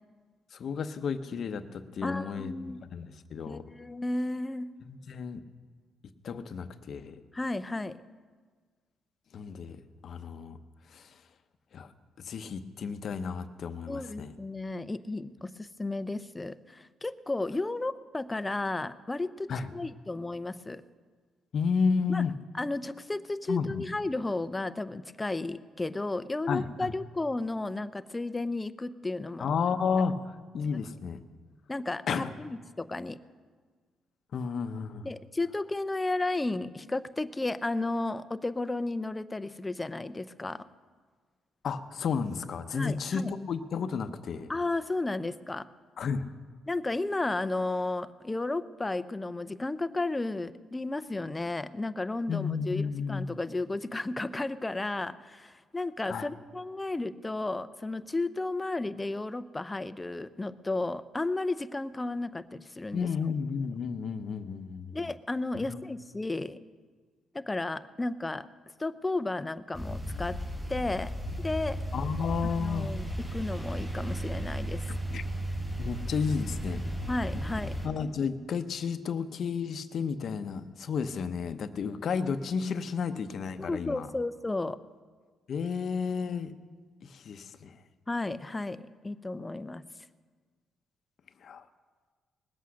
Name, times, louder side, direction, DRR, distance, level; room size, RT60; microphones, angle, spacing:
voice 1, 0.5-2.5 2.9-3.6 4.8-5.4 6.2-7.2 9.3-10.6 10.9-11.1 11.7-11.9 12.2-14.3 19.5-19.7 21.5-22.3 23.5-23.8 26.5-26.9 29.4-31.2 32.1-32.3 34.3-35.1 41.6-44.5 46.0-46.3 52.3-53.4 56.1-56.3 62.9-65.0 65.7-65.8 71.9-72.9 74.9-75.2 75.8-76.8 77.8-84.1 85.5-86.5 87.0-87.8 91.4-91.6, left 6 dB, 60° left, 10 dB, 0.8 m, -32 dB
voice 2, 2.0-2.8 3.5-4.7 7.3-8.0 13.9-20.8 22.1-22.3 22.6-29.5 30.7-30.8 31.7-33.2 35.0-40.6 42.7-43.3 44.5-45.6 46.7-63.1 64.9-66.6 67.3-68.5 68.8-70.4 70.7-71.1 71.4-71.8 72.4-74.8 77.1-77.7 83.6-84.8 88.1-89.8, left 2 dB, 15° left, 13 dB, 0.6 m, -33 dB
sound 1, 69.7-77.9, right 1 dB, 10° right, 4.1 m, -34 dB
20.0 x 8.3 x 6.3 m, 1.5 s
cardioid pair, 90°, 0 cm